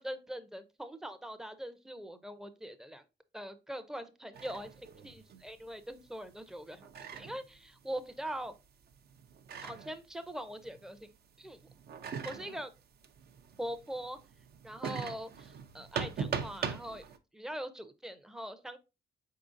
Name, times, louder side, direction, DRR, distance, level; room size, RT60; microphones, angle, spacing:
voice 1, 0.0-3.0 3.3-8.5 9.6-11.1 11.4-11.6 12.2-12.7 13.6-14.2 14.6-17.0 17.3-18.8, equal, 5° right, 10 dB, 0.5 m, -42 dB
sound 1, 4.3-11.2 11.4-17.2, right 6 dB, 50° right, 0.5 m, -42 dB
4.5 x 3.8 x 2.5 m, 0.27 s
cardioid pair, 90°, 20 cm